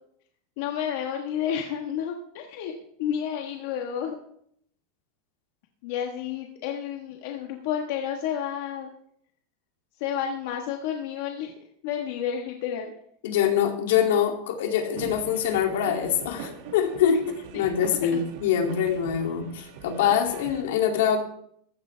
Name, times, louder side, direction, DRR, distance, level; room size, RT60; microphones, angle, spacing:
voice 1, 0.6-2.7 3.0-4.2 5.8-8.9 10.0-11.5 11.8-12.9 17.3-18.2, left 9 dB, 60° left, 2 dB, 1.4 m, -31 dB
voice 2, 13.2-17.2 17.5-21.2, left 8 dB, 80° left, 3 dB, 2.6 m, -24 dB
sound 1, 15.0-20.6, right 6 dB, 55° right, 2.1 m, -42 dB
15.5 x 13.0 x 3.4 m, 0.69 s
supercardioid pair, 170°, 0 cm